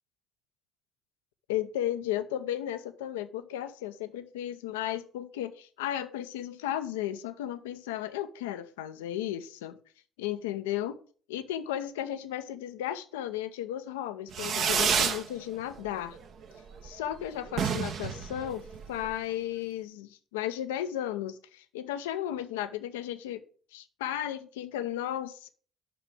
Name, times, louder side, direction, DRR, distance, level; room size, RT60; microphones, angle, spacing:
voice 1, 1.5-9.8 10.2-11.0 11.3-16.2 16.8-18.6 18.9-23.4 23.7-25.5, left 11 dB, 75° left, 0.6 m, -34 dB
Fireworks, 14.3-15.2 15.6-16.2 16.4-16.5 16.8-16.9 17.1-17.2 17.5-19.1, right 6 dB, 60° right, 1.0 m, -29 dB
6.0 x 5.9 x 6.5 m
figure-of-eight pair, 50°, 0 cm